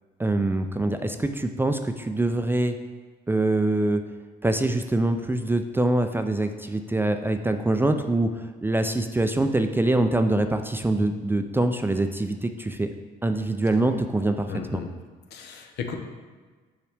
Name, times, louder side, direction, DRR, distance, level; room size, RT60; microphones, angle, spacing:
voice 1, 0.2-2.8 3.3-4.0 4.4-12.9 13.2-14.8, right 2 dB, 10° right, 7 dB, 0.4 m, -24 dB
voice 2, 14.5-14.9 15.3-15.9, left 6 dB, 65° left, 5 dB, 0.8 m, -34 dB
6.8 x 4.8 x 3.5 m, 1.4 s
hypercardioid pair, 60°, 18 cm